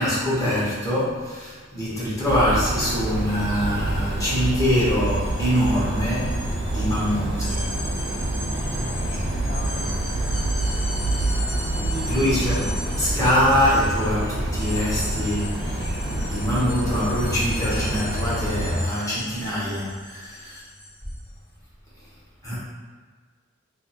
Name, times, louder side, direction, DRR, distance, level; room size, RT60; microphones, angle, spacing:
voice 1, 0.0-6.4 6.7-7.7 12.1-20.6 22.4-22.6, equal, 15° left, -10 dB, 1.2 m, -24 dB
sound 1, 2.2-18.8, right 1 dB, 60° right, 0.8 m, -27 dB
sound 2, 4.1-21.3, left 1 dB, 80° left, 1.0 m, -38 dB
voice 2, 9.1-10.0 11.7-12.5, right 2 dB, 40° right, -3 dB, 0.5 m, -38 dB
2.7 x 2.7 x 4.2 m, 1.5 s
head